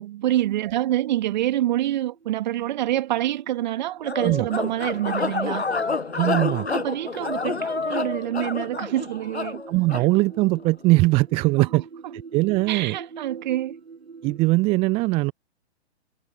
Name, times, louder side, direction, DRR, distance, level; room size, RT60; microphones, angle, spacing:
voice 1, 0.0-5.7 6.7-9.6 10.0-10.1 11.6-12.1 12.7-13.7, right 13 dB, 40° right, 2.3 m, -26 dB
sound 1, 2.1-14.5, right 5 dB, 65° right, 7.3 m, -45 dB
sound 2, 4.0-10.1, left 4 dB, 70° left, 6.5 m, -28 dB
voice 2, 6.2-6.7 9.7-11.8 12.3-13.0 14.2-15.3, right 22 dB, 15° right, 0.7 m, -20 dB
figure-of-eight pair, 120°, 34 cm